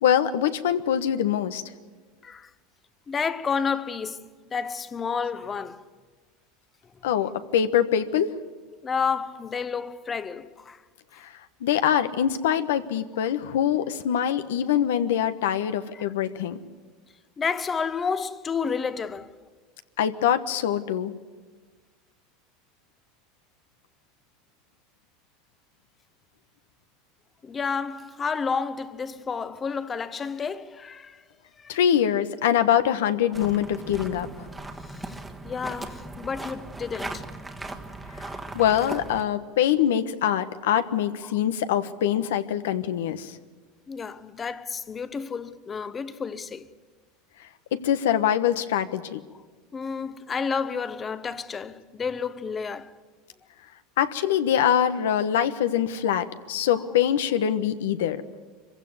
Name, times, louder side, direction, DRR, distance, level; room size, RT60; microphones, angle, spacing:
voice 1, 0.0-1.6 7.0-8.3 11.2-11.3 11.6-16.6 20.0-21.1 31.7-34.4 38.2-38.3 38.5-43.4 47.7-49.2 54.0-58.2, left 9 dB, 85° left, 1.2 m, -24 dB
voice 2, 3.1-5.9 8.8-10.8 12.4-12.5 15.9-16.0 17.4-19.3 27.4-31.2 31.6-31.8 34.8-35.2 35.4-37.3 41.2-41.4 43.9-46.7 49.7-53.0, left 5 dB, 25° left, 1.0 m, -31 dB
sound 1, 33.3-39.3, right 2 dB, 10° right, 1.5 m, -38 dB
24.0 x 16.0 x 9.6 m
supercardioid pair, 115°, 0 cm